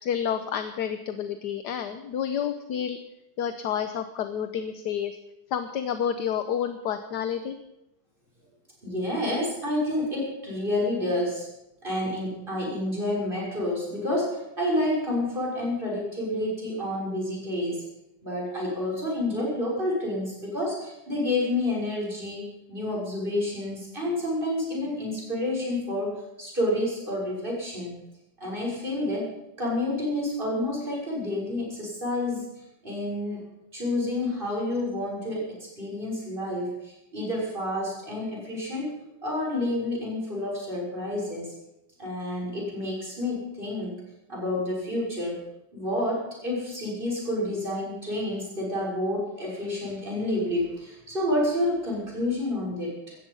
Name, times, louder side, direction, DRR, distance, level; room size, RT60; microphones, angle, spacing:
voice 1, 0.0-3.0 3.4-5.2 5.5-7.6, left 8 dB, 65° left, 9 dB, 1.3 m, -29 dB
voice 2, 8.8-11.5 11.8-17.8 18.2-27.9 28.4-29.3 29.6-32.5 32.8-38.9 39.2-41.5 42.0-44.0 44.3-45.4 45.7-53.2, left 1 dB, 25° right, -3 dB, 6.3 m, -29 dB
17.5 x 13.5 x 5.5 m, 0.88 s
omnidirectional pair, 2.2 m